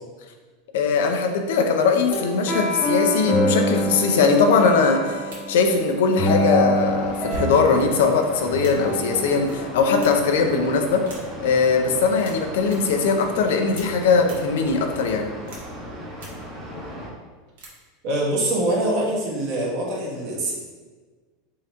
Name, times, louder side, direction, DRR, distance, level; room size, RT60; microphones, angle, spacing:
voice 1, 0.7-11.0 11.4-15.3, left 5 dB, 80° left, 4 dB, 0.6 m, -20 dB
sound 1, 2.1-11.5, left 1 dB, 5° left, 0.6 m, -26 dB
sound 2, 2.1-2.5 3.2-3.3 3.7-4.0 5.3-5.5 7.1-7.7 8.6-8.9 9.4-9.6 10.0-10.4 11.0-11.6 12.2-12.3 12.6-12.8 13.7-13.8 14.2-14.3 15.5-15.8 16.1-16.3 17.6-17.7, right 3 dB, 90° right, 1.4 m, -38 dB
sound 3, 6.7-17.1, equal, 15° right, 1.0 m, -37 dB
voice 2, 18.0-20.5, right 1 dB, 50° right, -3 dB, 1.3 m, -24 dB
3.7 x 2.9 x 4.4 m, 1.4 s
supercardioid pair, 155°, 0 cm